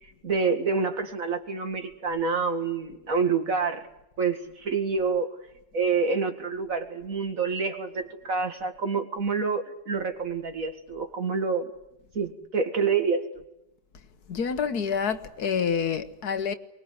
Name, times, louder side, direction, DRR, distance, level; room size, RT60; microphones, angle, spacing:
voice 1, 0.2-3.8 4.2-5.3 5.7-11.7 12.1-13.3, right 5 dB, 55° right, 2.5 m, -27 dB
voice 2, 14.3-16.5, left 6 dB, 70° left, 1.7 m, -27 dB
23.5 x 20.5 x 9.5 m
omnidirectional pair, 1.7 m